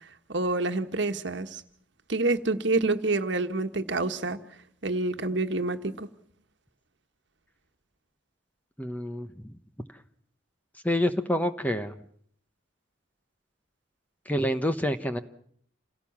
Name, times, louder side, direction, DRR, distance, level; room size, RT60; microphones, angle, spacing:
voice 1, 0.3-1.6 2.1-4.4 4.8-6.1, right 2 dB, 65° right, 7 dB, 1.4 m, -27 dB
voice 2, 8.8-9.5 10.8-11.9 14.3-15.2, equal, 10° left, 9 dB, 0.9 m, -27 dB
28.0 x 17.0 x 7.3 m, 0.65 s
head